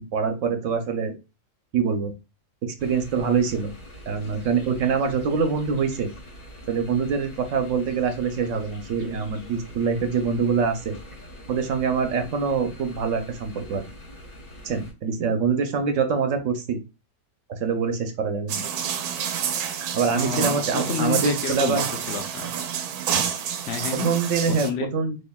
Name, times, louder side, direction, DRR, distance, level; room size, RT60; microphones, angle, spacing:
voice 1, 0.1-1.1 1.7-2.1 2.8-3.7 4.1-6.1 6.7-10.9 11.5-13.8 14.6-16.8 17.5-18.6 19.9-21.9 23.1-23.3 24.0-25.2, right 5 dB, 65° right, 7 dB, 0.9 m, -24 dB
sound 1, 2.8-14.9, equal, 40° left, 1.3 m, -43 dB
sound 2, 18.5-24.7, right 8 dB, 85° right, 1.1 m, -29 dB
voice 2, 20.1-22.5 23.7-24.1 24.5-24.9, left 6 dB, 55° left, 5 dB, 0.8 m, -29 dB
4.2 x 3.2 x 2.3 m, 0.28 s
omnidirectional pair, 1.6 m